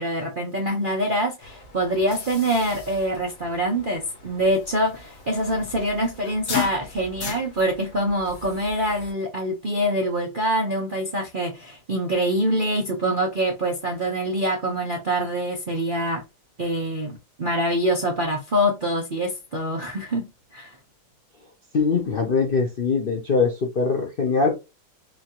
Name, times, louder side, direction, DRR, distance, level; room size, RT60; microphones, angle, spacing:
voice 1, 0.0-16.2 16.6-20.7, right 1 dB, 55° right, 0.5 m, -25 dB
sound 1, 1.4-9.1, left 5 dB, 50° left, 1.6 m, -37 dB
voice 2, 21.7-24.5, left 4 dB, 75° left, 0.5 m, -22 dB
5.0 x 2.5 x 2.9 m
omnidirectional pair, 2.0 m